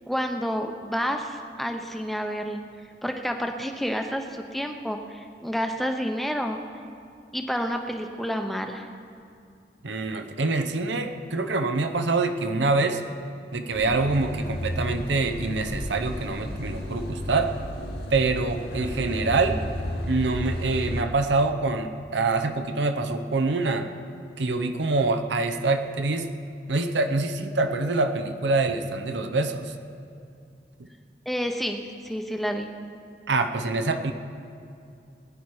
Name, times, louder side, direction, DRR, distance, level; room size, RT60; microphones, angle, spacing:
voice 1, 0.1-2.6 3.0-6.6 7.3-8.9 31.3-32.7, equal, ahead, 4 dB, 0.7 m, -29 dB
voice 2, 9.8-13.0 13.5-17.5 18.1-19.6 20.0-23.9 24.4-26.3 26.7-29.7 33.3-34.1, right 3 dB, 85° right, 7 dB, 0.8 m, -25 dB
sound 1, 13.7-21.0, equal, 65° left, 2.4 m, -33 dB
19.5 x 10.0 x 4.8 m, 2.5 s
head